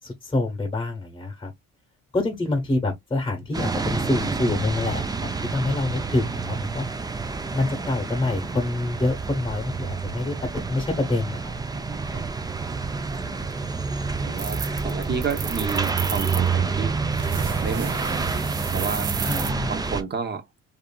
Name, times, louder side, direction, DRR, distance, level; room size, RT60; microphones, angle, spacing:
voice 1, 0.0-1.5 2.1-6.9 7.5-11.6 19.2-19.7, left 2 dB, 15° left, 1.0 m, -26 dB
sound 1, 3.5-20.0, right 4 dB, 15° right, 0.4 m, -28 dB
voice 2, 11.7-12.3 12.9-13.5 14.2-17.0 17.6-18.4 18.7-19.1 19.6-20.5, right 5 dB, 35° right, 0.8 m, -31 dB
sound 2, 14.4-16.5 17.1-19.5, right 8 dB, 80° right, 0.8 m, -33 dB
2.6 x 2.6 x 2.2 m
cardioid pair, 90°, 30 cm